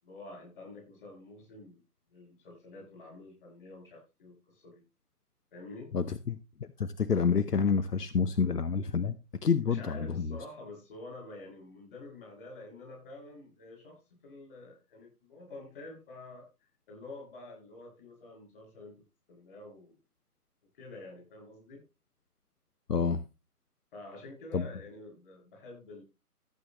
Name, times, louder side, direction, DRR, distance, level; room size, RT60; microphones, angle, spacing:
voice 1, 0.0-1.8 2.1-4.8 5.5-5.9 9.6-16.5 16.9-18.9 19.3-20.0 20.8-21.8 23.9-26.0, left 2 dB, 35° left, 2 dB, 6.9 m, -48 dB
voice 2, 5.9-9.1 9.4-10.4 22.9-23.2 24.5-24.7, left 5 dB, 80° left, 13 dB, 1.0 m, -28 dB
15.0 x 8.6 x 3.0 m, 0.25 s
figure-of-eight pair, 155°, 47 cm